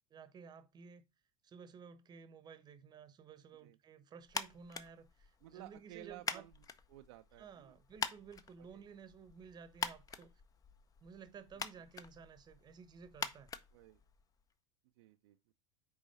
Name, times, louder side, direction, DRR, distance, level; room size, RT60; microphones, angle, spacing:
voice 1, 0.1-1.0 1.4-6.5 7.4-10.3 11.0-13.5, right 6 dB, 25° right, 0.9 m, -54 dB
sound 1, 4.3-14.5, left 6 dB, 20° left, 0.6 m, -46 dB
voice 2, 5.4-7.8 8.6-8.9 13.7-14.0 15.0-15.5, right 16 dB, 55° right, 0.5 m, -55 dB
6.2 x 4.7 x 4.0 m
figure-of-eight pair, 80°, 16 cm